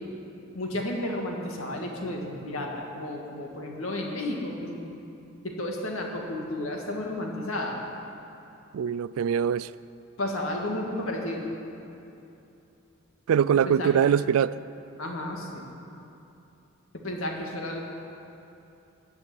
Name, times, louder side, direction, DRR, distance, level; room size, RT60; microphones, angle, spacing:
voice 1, 0.5-4.9 5.4-7.8 10.2-11.5 13.6-13.9 15.0-15.7 16.9-17.8, left 1 dB, 80° left, 2.1 m, -32 dB
voice 2, 8.7-9.7 13.3-14.6, right 8 dB, 85° right, 0.3 m, -23 dB
14.0 x 7.0 x 9.7 m
head